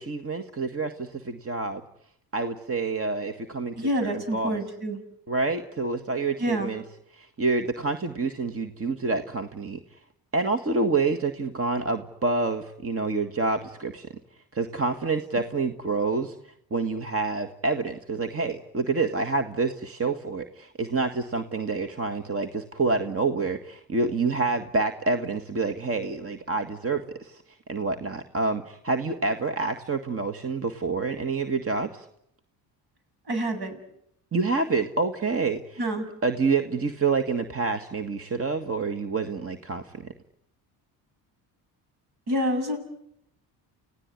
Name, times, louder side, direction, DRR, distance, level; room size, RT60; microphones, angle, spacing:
voice 1, 0.0-1.8 2.3-4.6 5.3-6.8 7.1-9.8 10.3-14.1 14.5-32.1 34.3-35.8 36.2-40.1, right 3 dB, 30° right, 7 dB, 1.8 m, -28 dB
voice 2, 3.8-5.0 6.4-6.7 33.3-33.8 35.8-36.1 42.3-42.8, equal, 55° right, 7 dB, 7.0 m, -27 dB
30.0 x 17.0 x 9.8 m, 0.78 s
supercardioid pair, 80°, 44 cm